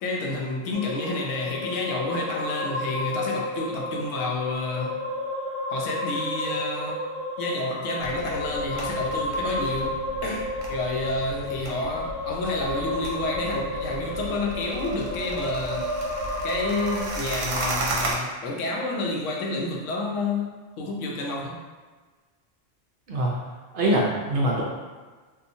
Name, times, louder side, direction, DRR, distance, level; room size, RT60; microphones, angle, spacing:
voice 1, 0.0-5.0 5.7-7.0 7.4-15.9 16.4-21.6, left 2 dB, 80° left, -1 dB, 0.9 m, -29 dB
sound 1, 0.7-17.1, left 1 dB, 10° right, 0.4 m, -32 dB
sound 2, 8.0-18.1, right 2 dB, 85° right, 0.9 m, -35 dB
voice 2, 23.7-24.6, right 1 dB, 60° right, -3 dB, 0.6 m, -23 dB
2.8 x 2.3 x 2.6 m, 1.4 s
omnidirectional pair, 1.3 m